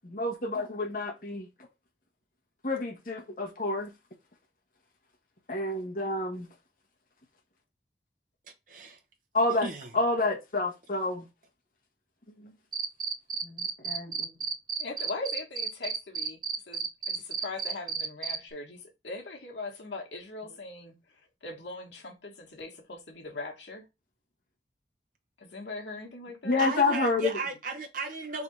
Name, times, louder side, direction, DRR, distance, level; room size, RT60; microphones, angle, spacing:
voice 1, 0.0-1.5 2.6-3.9 5.5-6.5 9.3-9.7 9.9-11.3 12.4-12.5 13.4-14.3 26.4-27.3, left 2 dB, 50° left, 1.2 m, -29 dB
voice 2, 8.7-9.0 9.6-9.9 26.6-28.4, right 3 dB, 50° right, 0.8 m, -35 dB
Cricket, 12.7-18.4, right 6 dB, 25° right, 0.3 m, -32 dB
voice 3, 14.8-23.8 25.4-26.7, left 2 dB, 85° left, 1.3 m, -40 dB
3.4 x 2.8 x 4.5 m
head